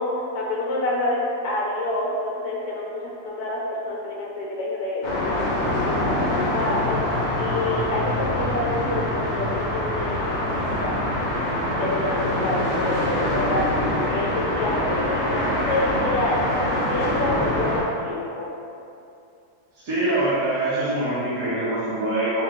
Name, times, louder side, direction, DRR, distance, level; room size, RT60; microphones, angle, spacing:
voice 1, 0.0-5.0 5.4-6.2 6.5-10.9 11.7-12.2 12.4-18.5, left 2 dB, 70° left, -3 dB, 1.2 m, -28 dB
sound 1, 5.0-17.8, left 1 dB, 35° left, 0.8 m, -24 dB
voice 2, 19.8-22.4, right 1 dB, 60° right, -12 dB, 1.4 m, -24 dB
3.8 x 3.1 x 3.7 m, 2.6 s
omnidirectional pair, 1.8 m